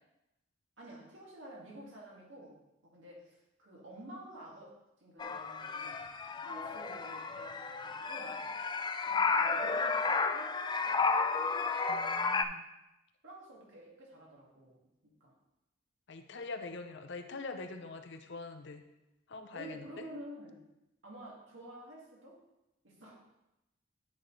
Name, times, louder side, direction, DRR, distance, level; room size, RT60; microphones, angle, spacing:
voice 1, 0.8-4.7 5.0-6.1 6.4-8.4 9.1-11.2 13.2-14.8 15.0-15.4 19.5-20.6 21.0-22.4 22.8-23.2, right 1 dB, 70° right, -4 dB, 2.2 m, -50 dB
sound 1, 5.2-12.4, left 4 dB, 20° left, 0.3 m, -32 dB
voice 2, 11.9-12.7 16.1-18.8 19.3-20.0, left 3 dB, 65° left, 7 dB, 0.7 m, -44 dB
9.5 x 6.0 x 3.3 m, 0.93 s
head